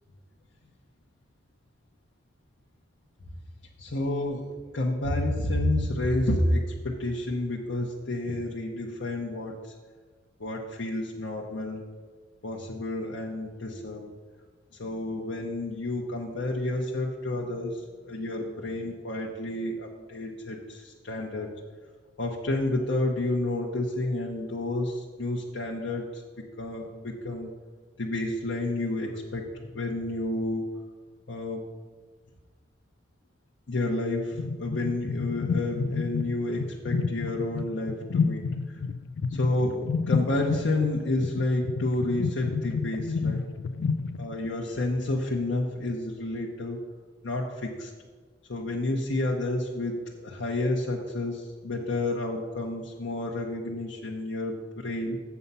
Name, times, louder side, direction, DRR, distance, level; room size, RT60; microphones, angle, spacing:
voice 1, 3.8-9.7 10.4-11.8 12.4-14.1 14.8-21.5 22.2-26.2 26.6-27.6 28.0-30.7 31.3-31.7 33.7-38.8 39.3-43.4 44.2-46.8 47.2-47.9 48.5-55.2, left 2 dB, 80° left, -1 dB, 0.9 m, -30 dB
sound 1, 34.3-44.5, left 5 dB, 65° left, 0.3 m, -30 dB
7.1 x 7.0 x 5.5 m, 1.4 s
head